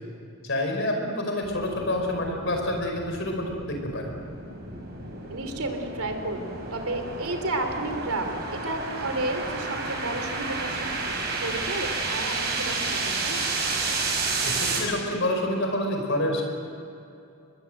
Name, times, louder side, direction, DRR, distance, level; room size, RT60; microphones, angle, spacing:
voice 1, 0.4-4.1 14.4-16.4, left 1 dB, 55° left, 3 dB, 5.0 m, -28 dB
sound 1, 1.4-14.8, right 3 dB, 50° right, 5.7 m, -31 dB
voice 2, 5.3-11.1 11.4-13.4, right 2 dB, 80° right, 5 dB, 3.2 m, -32 dB
23.5 x 22.0 x 7.8 m, 2.6 s
head